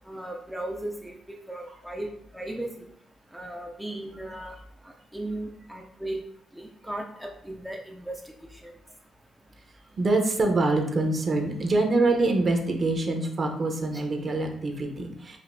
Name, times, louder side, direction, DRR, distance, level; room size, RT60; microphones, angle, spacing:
voice 1, 0.1-1.2 1.5-2.7 3.3-4.5 5.1-6.2 6.6-8.1 8.6-8.7 13.9-14.0, right 1 dB, 5° right, 1 dB, 0.4 m, -36 dB
voice 2, 10.0-15.4, right 2 dB, 40° right, 3 dB, 0.8 m, -25 dB
4.9 x 2.6 x 2.6 m, 0.70 s
cardioid pair, 90°, 0 cm